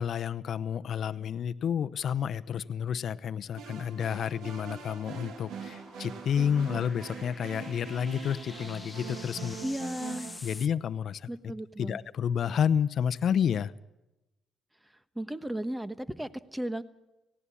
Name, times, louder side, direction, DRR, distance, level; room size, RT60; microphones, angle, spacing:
voice 1, 0.0-9.6 10.4-11.3 11.8-13.7, left 8 dB, 60° left, 14 dB, 0.8 m, -30 dB
sound 1, 3.2-10.7, left 3 dB, 20° left, 0.7 m, -49 dB
sound 2, 3.5-10.4, right 7 dB, 80° right, 2.0 m, -43 dB
voice 2, 9.6-10.3 11.3-12.0 15.1-16.8, right 1 dB, 10° right, 13 dB, 1.3 m, -35 dB
18.5 x 17.0 x 8.6 m, 0.99 s
cardioid pair, 90°, 0 cm